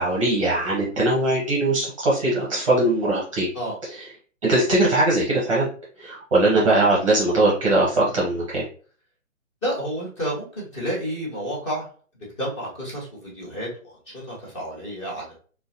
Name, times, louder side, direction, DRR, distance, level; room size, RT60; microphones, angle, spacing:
voice 1, 0.0-3.5 3.8-4.1 4.4-5.7 6.0-8.6, right 2 dB, 25° right, -4 dB, 0.7 m, -21 dB
voice 2, 9.6-11.9 12.4-15.4, equal, 20° left, -5 dB, 1.0 m, -30 dB
3.6 x 2.1 x 2.7 m, 0.42 s
figure-of-eight pair, 135°, 40 cm